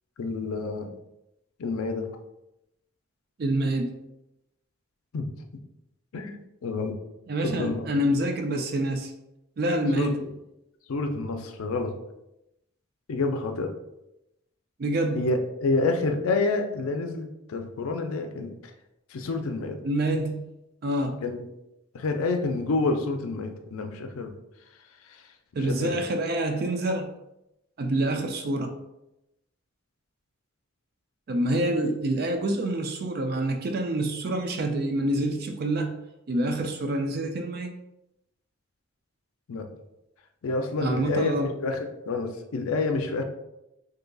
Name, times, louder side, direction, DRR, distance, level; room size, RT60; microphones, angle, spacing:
voice 1, 0.2-0.9 1.6-2.1 5.1-5.3 6.1-7.0 7.4-7.9 9.9-10.3 10.9-11.9 13.1-13.7 15.1-18.5 19.1-19.8 21.2-21.4 21.9-24.3 25.0-25.2 25.6-26.0 39.5-39.7 40.4-43.2, left 3 dB, 85° left, 6 dB, 0.4 m, -28 dB
voice 2, 3.4-3.9 7.3-9.1 9.6-10.2 14.8-15.3 19.8-20.5 20.8-21.1 25.5-27.1 27.8-28.7 31.3-36.0 36.3-37.7 40.8-41.5, right 1 dB, 45° right, 5 dB, 0.4 m, -27 dB
3.8 x 2.7 x 2.3 m, 0.89 s
head